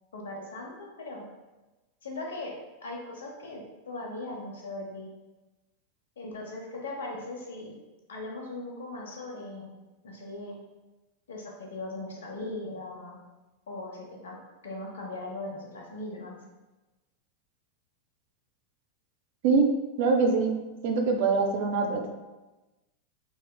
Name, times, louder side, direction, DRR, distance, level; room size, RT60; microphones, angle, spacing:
voice 1, 0.1-1.2 2.0-2.5 2.8-5.1 6.2-7.8 8.1-9.7 10.0-10.5 11.3-13.2 13.7-14.4 14.6-16.4, left 2 dB, 65° left, 0 dB, 0.9 m, -39 dB
voice 2, 20.0-20.5 20.8-22.1, right 4 dB, 50° right, 3 dB, 0.5 m, -24 dB
5.3 x 3.2 x 2.2 m, 1.1 s
figure-of-eight pair, 90°, 0 cm